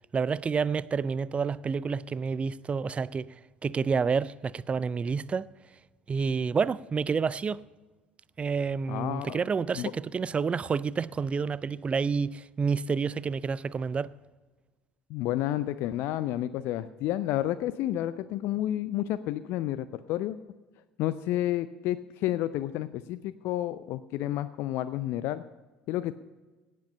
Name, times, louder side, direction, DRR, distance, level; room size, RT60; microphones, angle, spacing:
voice 1, 0.1-3.3 3.6-5.5 6.1-7.6 8.4-14.1, right 5 dB, 25° right, 0.4 m, -29 dB
voice 2, 8.9-9.4 9.8-9.9 15.1-20.4 21.0-25.4 25.9-26.1, left 13 dB, 55° left, 0.4 m, -30 dB
17.5 x 7.6 x 5.5 m
figure-of-eight pair, 60°, 5 cm